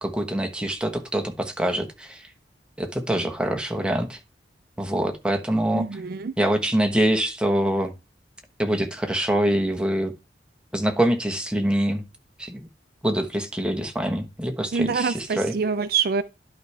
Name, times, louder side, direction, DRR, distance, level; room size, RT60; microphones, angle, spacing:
voice 1, 0.0-2.3 2.8-4.2 4.8-6.0 6.4-7.9 8.6-10.1 10.7-12.0 12.4-12.6 13.0-15.5, right 1 dB, 5° right, 1.1 m, -25 dB
voice 2, 5.7-6.3 14.7-16.2, right 5 dB, 55° right, 0.4 m, -25 dB
11.5 x 4.8 x 3.3 m
head